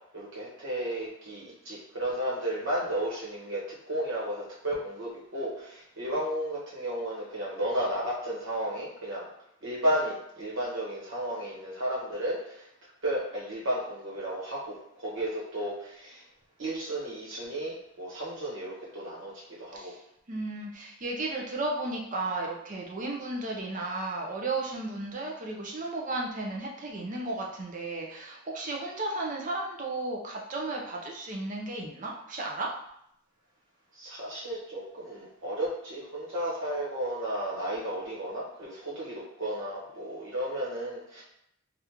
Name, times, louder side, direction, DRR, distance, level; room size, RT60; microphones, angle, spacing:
voice 1, 0.1-3.6 3.9-9.3 9.6-12.7 13.0-16.2 16.6-20.0 34.0-41.2, right 1 dB, 60° right, -6 dB, 1.2 m, -33 dB
voice 2, 20.3-32.7, right 2 dB, 35° right, -1 dB, 0.5 m, -34 dB
3.5 x 2.4 x 2.9 m, 0.76 s
head